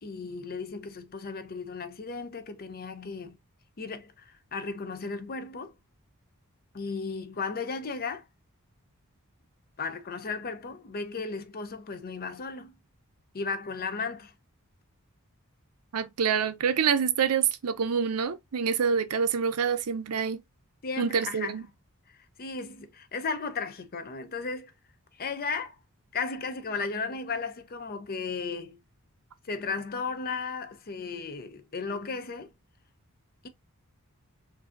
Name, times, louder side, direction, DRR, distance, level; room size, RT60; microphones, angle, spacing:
voice 1, 0.0-3.4 3.8-5.7 6.7-8.3 9.8-12.7 13.3-14.3 20.8-21.6 22.1-24.7 25.1-25.8 26.1-28.8 29.4-32.5 33.4-33.5, left 4 dB, 45° left, 0.6 m, -35 dB
voice 2, 15.9-20.4 21.0-21.6, right 6 dB, 85° right, 0.6 m, -26 dB
4.6 x 2.6 x 2.5 m
head